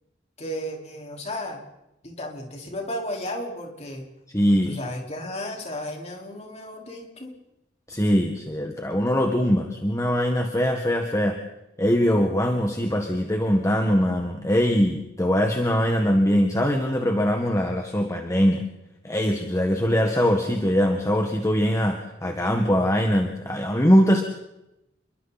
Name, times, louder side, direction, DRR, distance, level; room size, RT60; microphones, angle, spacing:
voice 1, 0.4-1.6 2.0-4.1 4.6-7.3, left 1 dB, 35° left, 0 dB, 4.8 m, -34 dB
voice 2, 4.3-4.8 7.9-11.4 11.8-18.7 19.0-24.2, equal, 15° left, 3 dB, 1.8 m, -22 dB
29.0 x 23.0 x 4.3 m, 0.91 s
head